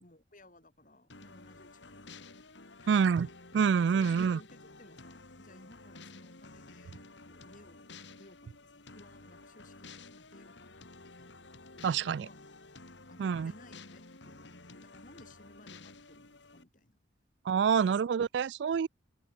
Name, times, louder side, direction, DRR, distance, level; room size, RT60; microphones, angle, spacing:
voice 1, 0.0-2.5 2.8-3.0 3.7-11.6 12.2-12.6 13.1-17.0 17.8-18.1, left 1 dB, 45° left, 5.6 m, -59 dB
sound 1, 1.1-16.6, left 3 dB, 75° left, 3.0 m, -52 dB
voice 2, 2.9-3.3 3.5-4.4 11.8-12.3 13.2-13.5 17.5-18.9, right 6 dB, 70° right, 0.3 m, -27 dB
open air
head